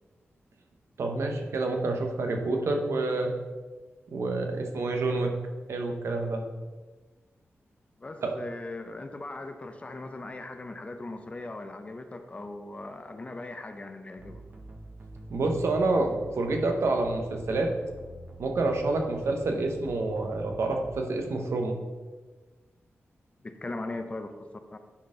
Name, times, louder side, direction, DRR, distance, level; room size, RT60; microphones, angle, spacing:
voice 1, 1.0-3.3 4.1-5.3 5.7-6.4 8.2-8.4 15.3-17.7 18.4-21.8, right 2 dB, 80° right, 3 dB, 1.0 m, -28 dB
voice 2, 8.0-14.4 23.4-24.8, left 2 dB, 25° left, 7 dB, 0.5 m, -39 dB
sound 1, 14.2-21.1, right 1 dB, 40° right, 1.0 m, -46 dB
9.9 x 4.3 x 3.8 m, 1.3 s
wide cardioid pair, 155°, 5 cm